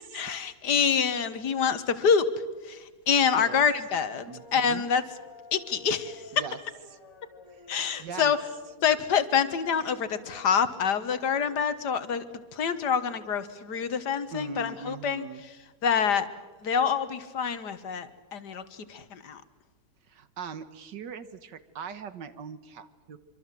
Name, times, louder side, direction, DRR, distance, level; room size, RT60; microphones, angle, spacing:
voice 1, 0.1-2.3 2.7-5.0 5.5-6.2 7.7-8.4 8.8-15.3 15.8-16.3 16.6-18.6 18.9-19.4, left 7 dB, 70° left, 12 dB, 1.9 m, -26 dB
voice 2, 3.3-3.7 4.3-4.8 6.3-6.6 6.9-7.0 7.5-7.7 8.0-8.4 14.3-15.4 20.1-23.2, right 6 dB, 90° right, 12 dB, 2.0 m, -40 dB
sound 1, 4.3-11.5, left 2 dB, 90° left, 4.2 m, -51 dB
25.5 x 25.5 x 7.6 m, 1.3 s
omnidirectional pair, 1.8 m